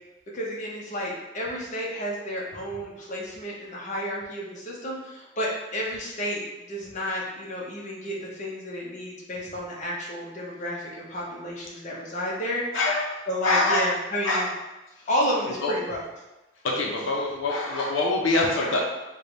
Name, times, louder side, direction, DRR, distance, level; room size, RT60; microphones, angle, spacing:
voice 1, 0.3-6.4 6.7-12.6 13.3-14.5 15.1-16.0, equal, 40° left, -4 dB, 0.7 m, -31 dB
voice 2, 12.7-13.9 14.2-14.5 15.0-15.1 15.6-15.7 16.6-18.8, left 2 dB, 80° left, -1 dB, 0.6 m, -25 dB
3.3 x 2.2 x 3.9 m, 1.0 s
head